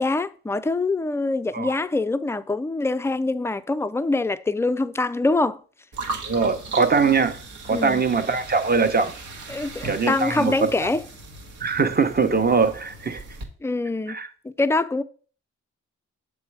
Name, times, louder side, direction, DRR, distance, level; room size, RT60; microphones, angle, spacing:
voice 1, 0.0-5.6 7.7-8.0 9.5-11.0 13.6-14.2 14.4-15.0, left 2 dB, 10° left, 0.4 m, -24 dB
sound 1, 5.9-13.4, right 3 dB, 70° right, 1.1 m, -38 dB
voice 2, 6.2-7.4 7.6-9.1 9.8-10.7 11.6-13.2 14.1-14.3, right 5 dB, 30° right, 0.8 m, -22 dB
6.5 x 3.2 x 4.7 m
supercardioid pair, 45°, 31 cm